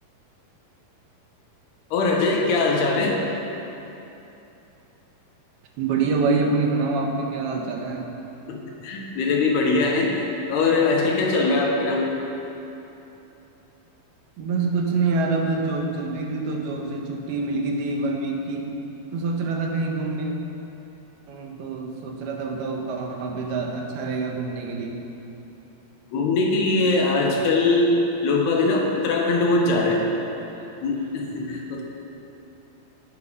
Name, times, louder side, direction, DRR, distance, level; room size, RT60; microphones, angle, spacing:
voice 1, 1.9-3.2 8.5-10.1 10.5-12.1 26.1-28.0 28.2-30.1 30.8-31.8, left 3 dB, 90° left, 0 dB, 3.8 m, -21 dB
voice 2, 5.8-8.1 14.4-18.7 19.1-20.3 21.3-25.0, right 3 dB, 80° right, 1 dB, 3.3 m, -26 dB
16.5 x 11.5 x 5.6 m, 3.0 s
omnidirectional pair, 4.4 m